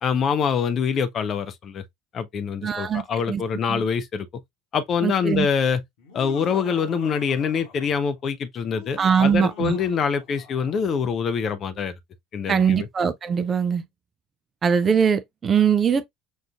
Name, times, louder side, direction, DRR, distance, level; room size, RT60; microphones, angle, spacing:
voice 1, 0.0-1.8 2.1-4.3 4.7-5.8 6.1-11.9 12.3-12.9, left 6 dB, 40° left, 0.5 m, -25 dB
voice 2, 2.6-3.4 3.7-3.8 5.0-5.5 9.0-9.7 12.5-13.8 14.6-16.1, right 7 dB, 30° right, 0.4 m, -21 dB
Laughter, 6.0-8.1 8.6-10.9, left 6 dB, 60° left, 1.2 m, -44 dB
6.2 x 2.4 x 2.3 m
figure-of-eight pair, 65°, 0 cm